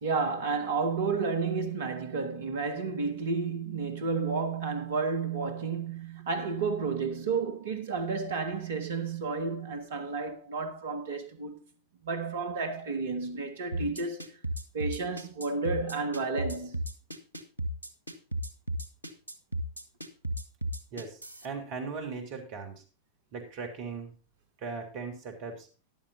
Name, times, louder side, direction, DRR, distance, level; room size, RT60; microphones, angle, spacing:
voice 1, 0.0-11.6 12.0-14.3 14.7-16.8, right 4 dB, 60° right, 1.7 m, -31 dB
sound 1, 13.7-21.5, right 1 dB, 90° left, 1.3 m, -34 dB
voice 2, 20.9-22.8 23.3-24.1 24.6-25.7, right 4 dB, 45° right, 3.3 m, -38 dB
14.5 x 11.0 x 2.6 m
figure-of-eight pair, 90°, 0 cm